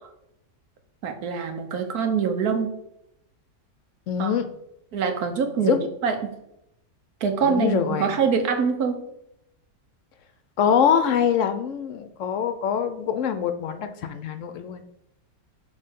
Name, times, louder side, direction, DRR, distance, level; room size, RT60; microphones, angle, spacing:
voice 1, 1.0-2.7 4.2-4.3 4.9-6.3 7.2-9.1, right 6 dB, 85° right, 6 dB, 1.4 m, -24 dB
voice 2, 4.1-4.5 5.6-5.8 7.4-8.1 10.6-14.8, left 8 dB, 65° left, 9 dB, 0.8 m, -24 dB
6.5 x 3.3 x 5.2 m, 0.80 s
omnidirectional pair, 1.6 m